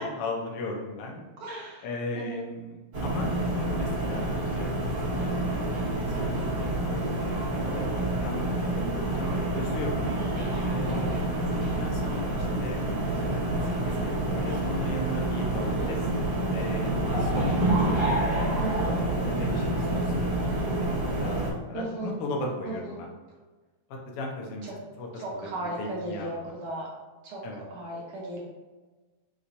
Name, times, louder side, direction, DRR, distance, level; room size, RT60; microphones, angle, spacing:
voice 1, 0.0-1.2 1.8-5.6 6.1-6.4 6.7-7.1 7.7-8.8 9.2-10.1 10.6-16.0 16.5-17.7 18.3-18.6 19.3-20.7 21.1-23.1 23.9-24.7 25.0-25.2 25.8-26.5 27.4-27.6, left 2 dB, 75° left, 0 dB, 1.3 m, -37 dB
voice 2, 1.4-1.8 2.1-2.5 10.9-11.3 15.6-15.9 18.6-19.0 21.7-22.2 22.6-23.0 24.6-24.8 25.1-26.9 27.2-28.4, right 2 dB, 70° right, -4 dB, 1.3 m, -36 dB
sound 1, 2.9-21.5, right 1 dB, 45° right, 2.0 m, -28 dB
5.6 x 3.0 x 2.6 m, 1.3 s
omnidirectional pair, 3.4 m